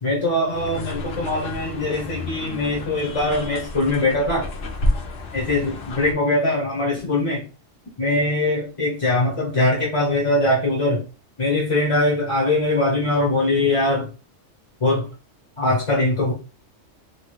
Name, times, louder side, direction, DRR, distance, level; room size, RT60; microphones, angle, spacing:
voice 1, 0.0-4.5 5.3-7.4 8.0-11.0 11.4-14.1 14.8-15.1 15.6-16.3, left 2 dB, 30° left, -3 dB, 0.7 m, -21 dB
sound 1, 0.5-6.1, left 1 dB, 60° left, 0.8 m, -30 dB
3.0 x 2.7 x 3.0 m, 0.33 s
omnidirectional pair, 1.3 m